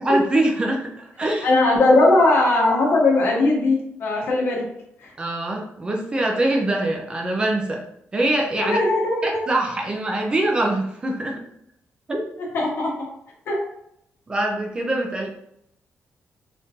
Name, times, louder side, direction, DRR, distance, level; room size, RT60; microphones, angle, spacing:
voice 1, 0.0-1.5 5.2-7.8 8.1-8.8 9.2-11.4 12.1-12.3 14.3-15.3, right 1 dB, 20° right, 1 dB, 0.4 m, -23 dB
voice 2, 1.4-4.6 5.0-5.1 8.6-9.4 12.5-13.1 13.5-13.6, left 2 dB, 60° left, -2 dB, 1.0 m, -19 dB
3.5 x 2.5 x 2.7 m, 0.74 s
wide cardioid pair, 175°, 4 cm